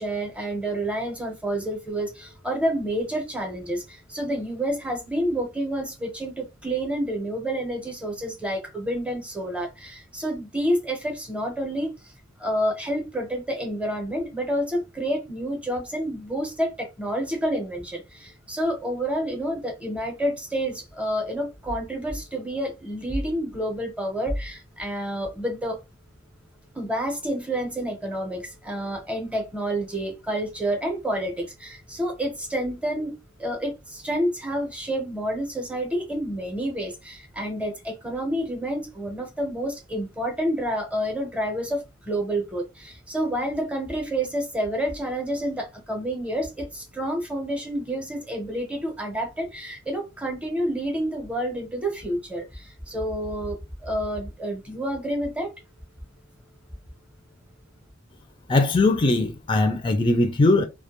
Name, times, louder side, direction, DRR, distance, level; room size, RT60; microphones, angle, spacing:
voice 1, 0.0-12.1 12.4-25.8 26.7-55.5, right 1 dB, 5° right, 0.7 m, -29 dB
voice 2, 58.5-60.6, left 2 dB, 25° left, 0.4 m, -20 dB
2.1 x 2.1 x 2.9 m
head